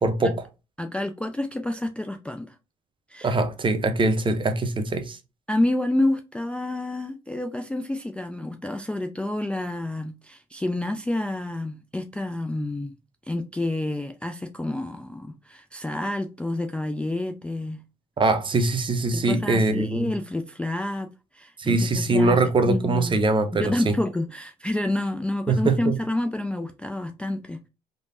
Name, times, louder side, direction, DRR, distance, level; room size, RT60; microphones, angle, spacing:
voice 1, 0.0-0.4 3.2-5.2 18.2-20.1 21.6-24.0 25.5-26.0, right 2 dB, 30° right, 0.6 m, -22 dB
voice 2, 0.8-2.5 3.1-3.4 5.5-13.0 13.3-17.8 19.1-22.4 22.7-23.2 23.6-27.7, left 1 dB, 5° left, 0.3 m, -29 dB
3.2 x 2.1 x 2.6 m
hypercardioid pair, 65°, 17 cm